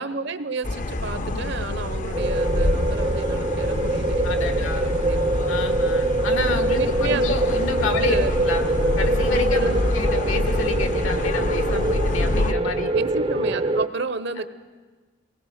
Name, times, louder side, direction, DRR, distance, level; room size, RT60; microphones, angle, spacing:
voice 1, 0.0-5.3 6.7-7.3 7.8-8.3 9.3-9.9 12.4-14.5, right 4 dB, 55° right, 12 dB, 0.8 m, -31 dB
sound 1, 0.6-12.5, left 2 dB, 40° left, 0.7 m, -26 dB
sound 2, 2.1-13.9, right 2 dB, 25° right, 0.6 m, -24 dB
voice 2, 4.2-4.9 5.5-8.6 9.0-12.9, left 3 dB, 80° left, 6 dB, 1.8 m, -29 dB
23.0 x 18.5 x 6.6 m, 1.4 s
head